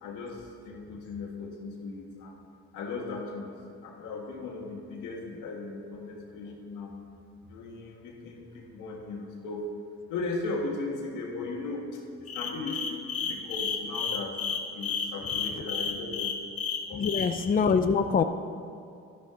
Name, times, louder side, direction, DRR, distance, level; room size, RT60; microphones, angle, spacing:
voice 1, 0.0-2.4 2.7-3.6 3.8-7.0 7.4-9.7 10.1-14.4 14.7-16.3 16.9-17.3, left 3 dB, 90° left, 0 dB, 1.8 m, -37 dB
sound 1, 12.3-17.3, left 6 dB, 50° left, 1.2 m, -31 dB
voice 2, 17.0-18.2, left 5 dB, 30° left, 8 dB, 0.5 m, -24 dB
12.0 x 11.5 x 3.8 m, 2.4 s
cardioid pair, 90°, 30 cm